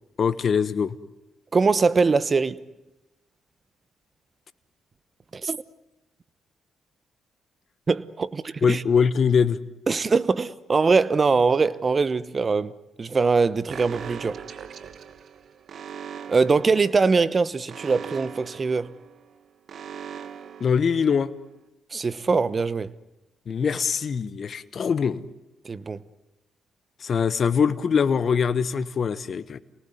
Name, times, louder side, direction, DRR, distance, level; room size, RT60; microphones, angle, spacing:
voice 1, 0.2-0.9 8.6-9.6 20.6-21.3 23.5-25.2 27.0-29.6, left 6 dB, 55° left, 1.2 m, -23 dB
voice 2, 1.5-2.6 5.3-5.6 7.9-8.8 9.9-12.7 13.0-14.4 16.3-18.9 21.9-22.9 25.6-26.0, right 4 dB, 40° right, 1.2 m, -22 dB
Alarm, 13.7-21.5, right 8 dB, 60° right, 1.3 m, -41 dB
28.5 x 19.5 x 9.5 m
supercardioid pair, 55°, 0 cm